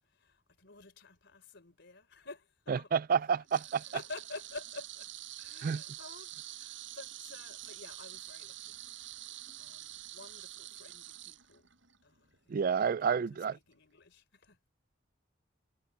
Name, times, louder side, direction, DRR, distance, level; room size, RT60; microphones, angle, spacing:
voice 1, 0.0-2.9 3.3-5.1 5.4-9.1 9.6-11.7 12.0-14.6, left 3 dB, 60° left, 4.0 m, -51 dB
voice 2, 2.7-3.8 5.6-5.8 12.5-13.5, right 6 dB, 45° right, 0.3 m, -29 dB
sound 1, 3.5-12.0 12.3-12.5 13.7-13.8, right 14 dB, 70° right, 5.9 m, -47 dB
head